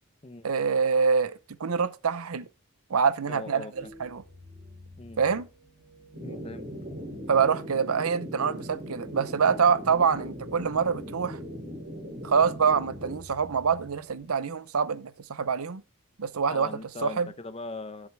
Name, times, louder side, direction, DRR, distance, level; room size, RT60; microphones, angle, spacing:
voice 1, 0.4-2.5 2.9-4.2 5.2-5.5 7.3-11.4 12.2-15.8 16.2-16.7 17.0-17.3, right 6 dB, 90° right, 0.7 m, -25 dB
voice 2, 3.3-3.7 5.0-5.2 6.2-6.7 16.5-18.1, left 2 dB, 25° left, 0.7 m, -39 dB
sound 1, 3.7-14.2, left 1 dB, 30° right, 1.6 m, -51 dB
sound 2, 6.1-13.2, equal, 50° right, 2.7 m, -39 dB
11.5 x 7.3 x 3.4 m
head